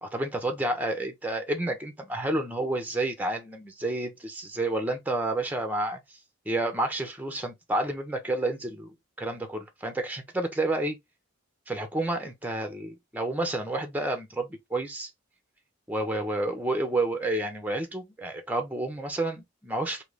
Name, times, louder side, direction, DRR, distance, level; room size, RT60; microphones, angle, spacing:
voice 1, 0.0-6.0 6.5-11.0 11.7-15.1 15.9-20.0, right 2 dB, 10° right, 0.8 m, -30 dB
3.8 x 2.9 x 3.3 m
head